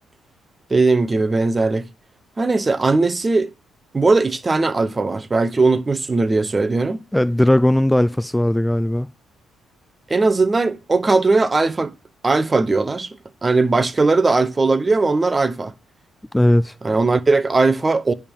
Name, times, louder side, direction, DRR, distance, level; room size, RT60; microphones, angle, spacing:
voice 1, 0.7-1.8 2.4-3.5 3.9-7.0 10.1-11.9 12.2-13.2 13.4-15.7 16.8-18.1, right 3 dB, 25° right, 0.8 m, -18 dB
voice 2, 7.1-9.1 16.3-16.7, left 1 dB, 5° left, 0.4 m, -17 dB
10.5 x 3.6 x 7.0 m
cardioid pair, 90°, 0 cm